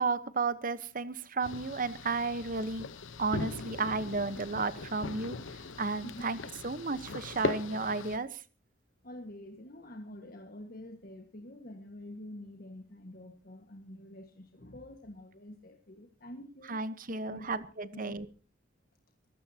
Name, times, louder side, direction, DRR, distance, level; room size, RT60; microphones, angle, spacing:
voice 1, 0.0-2.9 3.2-6.4 6.6-8.4 16.7-18.3, right 4 dB, 45° right, 14 dB, 1.0 m, -33 dB
sound 1, 1.4-8.2, left 3 dB, 80° left, 1.0 m, -39 dB
voice 2, 9.0-16.8 17.1-17.7 17.9-18.2, left 1 dB, 50° left, 4 dB, 1.7 m, -47 dB
24.0 x 15.0 x 2.9 m, 0.35 s
head